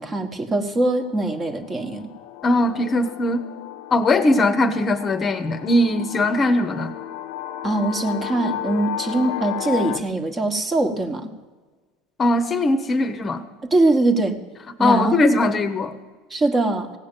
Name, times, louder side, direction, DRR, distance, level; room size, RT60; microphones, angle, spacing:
voice 1, 0.0-2.1 4.4-4.5 7.6-11.3 13.6-14.4 14.8-15.1 16.3-16.9, right 2 dB, 20° right, 7 dB, 1.2 m, -22 dB
sound 1, 1.0-10.0, left 13 dB, 75° left, 0.7 m, -34 dB
voice 2, 2.4-3.4 3.9-6.9 12.2-13.4 14.8-15.9, left 2 dB, 25° left, 8 dB, 0.9 m, -20 dB
16.5 x 6.4 x 8.9 m, 1.3 s
supercardioid pair, 120°, 0 cm